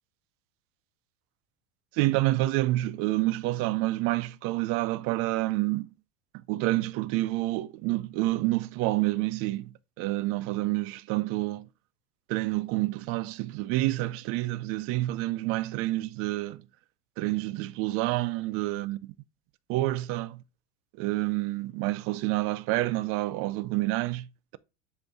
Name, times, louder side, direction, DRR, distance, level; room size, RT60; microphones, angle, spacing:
voice 1, 1.9-5.9 6.3-11.7 12.3-16.6 17.2-19.1 19.7-20.4 21.0-24.6, right 18 dB, 40° right, 0.4 m, -28 dB
7.8 x 2.6 x 4.6 m
supercardioid pair, 155°, 35 cm